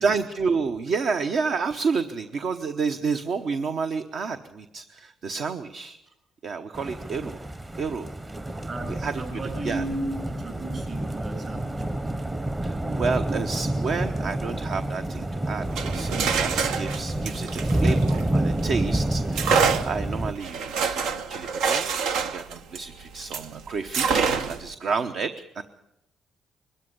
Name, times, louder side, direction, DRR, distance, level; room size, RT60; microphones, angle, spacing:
voice 1, 0.0-6.0 6.4-7.4 7.8-8.1 8.3-8.4 8.9-9.8 12.6-25.6, right 5 dB, 60° right, 8 dB, 1.0 m, -30 dB
sound 1, 6.7-20.3, right 1 dB, 20° right, 1.0 m, -28 dB
voice 2, 8.7-11.8, right 1 dB, 40° right, 5 dB, 7.6 m, -34 dB
sound 2, 15.6-18.7 19.3-23.5 23.9-24.7, right 5 dB, 90° right, 1.1 m, -26 dB
22.5 x 13.0 x 9.7 m, 0.86 s
cardioid pair, 90°, 0 cm